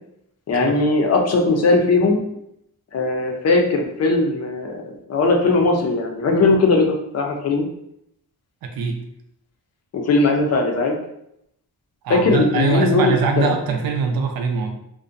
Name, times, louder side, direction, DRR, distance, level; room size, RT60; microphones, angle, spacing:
voice 1, 0.5-2.2 2.9-7.7 9.9-11.0 12.1-13.5, left 3 dB, 50° left, 2 dB, 0.4 m, -19 dB
voice 2, 8.6-9.0 12.0-14.7, right 4 dB, 80° right, 4 dB, 0.5 m, -22 dB
2.5 x 2.1 x 2.5 m, 0.77 s
wide cardioid pair, 160°, 35 cm